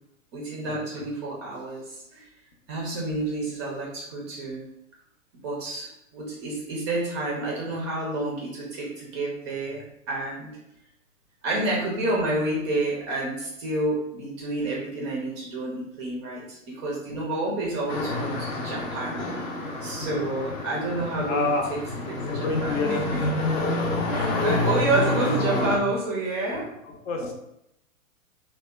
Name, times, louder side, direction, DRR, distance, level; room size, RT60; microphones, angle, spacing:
voice 1, 0.3-2.3 2.7-4.7 5.4-10.5 11.4-19.2 19.8-21.8 22.0-23.3 24.1-26.7, right 2 dB, 25° right, -3 dB, 0.3 m, -29 dB
sound 1, 17.9-25.8, left 2 dB, 40° left, 0.5 m, -28 dB
voice 2, 21.3-21.7 22.2-23.0 26.8-27.3, left 3 dB, 70° left, 2 dB, 0.7 m, -28 dB
2.7 x 2.1 x 2.2 m, 0.81 s
hypercardioid pair, 115°, 40 cm